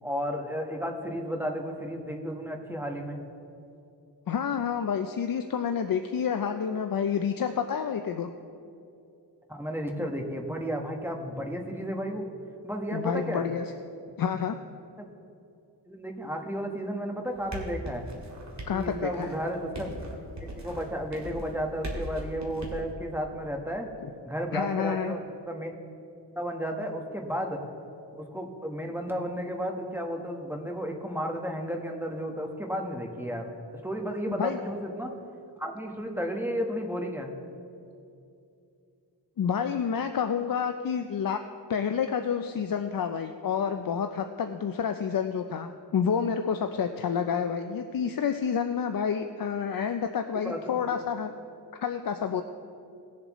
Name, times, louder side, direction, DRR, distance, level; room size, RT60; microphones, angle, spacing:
voice 1, 0.0-3.2 9.5-12.2 12.6-13.5 15.8-18.1 18.7-20.0 20.4-23.9 24.2-25.2 25.5-25.7 26.4-27.6 28.1-35.1 35.6-37.3 50.4-50.8, equal, 5° right, 2 dB, 1.2 m, -33 dB
voice 2, 4.3-8.3 12.9-13.6 14.2-14.6 18.7-19.3 24.5-25.2 34.4-34.6 39.4-41.4 41.7-51.3 51.8-52.4, left 7 dB, 55° left, 7 dB, 0.5 m, -29 dB
sound 1, 17.3-22.8, right 1 dB, 40° right, 2.2 m, -39 dB
18.5 x 7.3 x 3.1 m, 2.6 s
wide cardioid pair, 70°, 42 cm